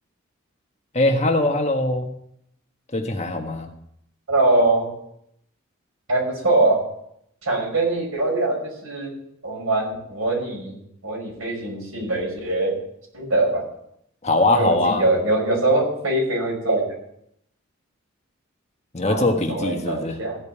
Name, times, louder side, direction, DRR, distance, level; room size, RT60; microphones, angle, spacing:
voice 1, 0.9-2.1 2.9-3.7 14.2-15.0 18.9-20.2, left 2 dB, 30° left, 3 dB, 1.5 m, -21 dB
voice 2, 4.3-4.9 6.1-6.9 7.4-9.1 9.4-10.8 11.0-12.7 13.1-13.7 14.5-16.9 19.1-20.4, right 2 dB, 90° right, -2 dB, 5.8 m, -22 dB
16.0 x 5.4 x 8.4 m, 0.73 s
head